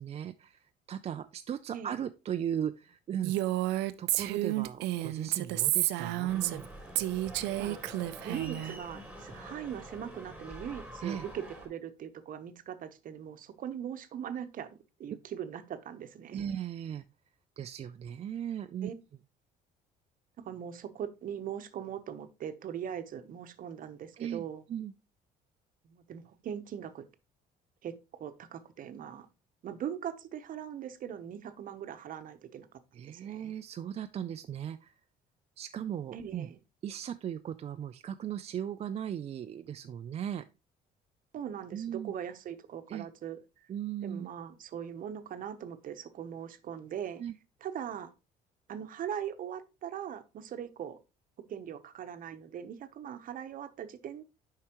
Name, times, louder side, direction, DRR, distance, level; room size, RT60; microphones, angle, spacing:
voice 1, 0.0-3.3 4.0-6.7 11.0-11.3 16.3-17.0 17.6-18.9 24.2-24.9 32.9-34.9 35.6-36.5 36.8-40.5 41.7-42.1 42.9-43.1 43.7-44.3 47.2-47.3, right 9 dB, 40° right, 0.4 m, -37 dB
Female speech woman speaking, 3.2-6.7 7.0-8.7, right 16 dB, 90° right, 0.5 m, -31 dB
sound 1, 6.3-11.7, right 1 dB, 5° right, 3.4 m, -46 dB
voice 2, 8.2-16.5 18.8-18.9 20.4-24.6 25.9-27.0 27.8-29.3 29.6-33.5 36.1-36.6 41.3-43.4 44.0-47.2 47.6-48.1 48.7-51.0 51.5-54.2, right 9 dB, 55° right, 0.9 m, -40 dB
8.5 x 5.6 x 3.0 m
cardioid pair, 110°, 17 cm